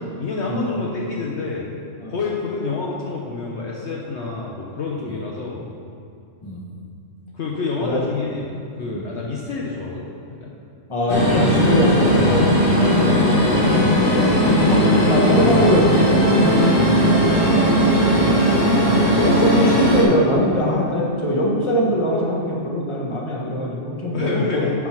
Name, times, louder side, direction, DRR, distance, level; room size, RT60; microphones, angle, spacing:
voice 1, 0.2-1.7 2.1-5.6 7.3-8.5 8.8-10.0 10.4-10.5 11.4-11.7 12.2-12.4 12.9-15.1 16.4-16.7 17.3-18.2 24.1-24.7, left 4 dB, 60° left, -3 dB, 1.1 m, -28 dB
voice 2, 10.9-12.4 14.7-14.8 15.1-17.0 19.2-24.7, equal, 25° left, -4 dB, 1.3 m, -22 dB
sound 1, 11.1-20.0, equal, 45° left, 1.8 m, -17 dB
9.8 x 4.7 x 5.9 m, 2.4 s
omnidirectional pair, 1.4 m